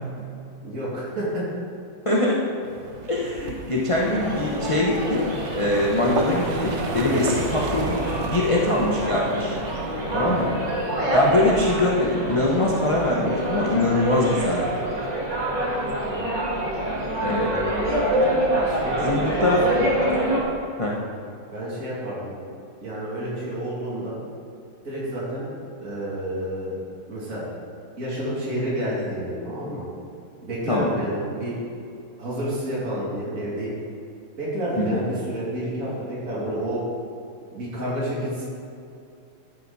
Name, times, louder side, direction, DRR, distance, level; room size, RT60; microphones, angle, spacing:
voice 1, 0.6-1.4 10.1-10.3 16.0-16.3 18.7-19.9 21.5-22.3 22.8-24.2 24.8-25.5 25.8-26.7 27.1-27.4 28.0-29.8 30.4-31.6 32.2-33.7 34.4-36.8 37.5-38.5, right 1 dB, 40° right, -8 dB, 3.1 m, -29 dB
voice 2, 2.0-2.5 3.1-5.3 5.5-9.6 10.1-10.6 11.1-14.6 17.2-17.5 19.0-19.7 20.8-21.0 30.7-30.9 34.8-35.0, left 1 dB, 25° left, -4 dB, 0.7 m, -23 dB
sound 1, 2.6-14.4, right 4 dB, 80° right, 0.6 m, -36 dB
sound 2, 3.9-20.4, right 1 dB, 20° right, 1.8 m, -26 dB
14.5 x 8.2 x 4.2 m, 2.6 s
omnidirectional pair, 2.4 m